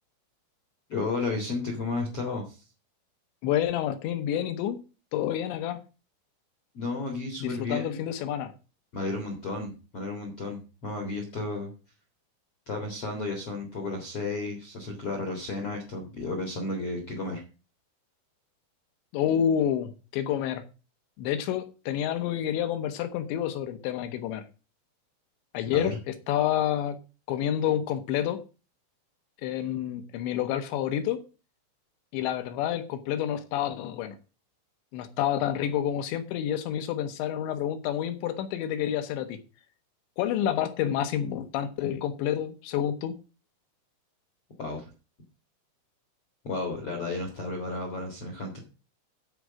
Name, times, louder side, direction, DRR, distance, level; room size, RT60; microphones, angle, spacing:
voice 1, 0.9-2.6 6.7-8.0 8.9-11.7 12.7-17.4 25.7-26.0 44.6-44.8 46.4-48.6, left 2 dB, 55° left, 3 dB, 1.6 m, -33 dB
voice 2, 3.4-4.8 5.1-5.8 7.4-8.5 19.1-20.6 21.2-24.4 25.5-27.0 27.3-28.4 29.4-31.2 32.1-34.2 34.9-39.4 40.2-43.2, left 10 dB, 75° left, 10 dB, 2.9 m, -29 dB
13.0 x 4.7 x 6.3 m, 0.32 s
omnidirectional pair, 5.8 m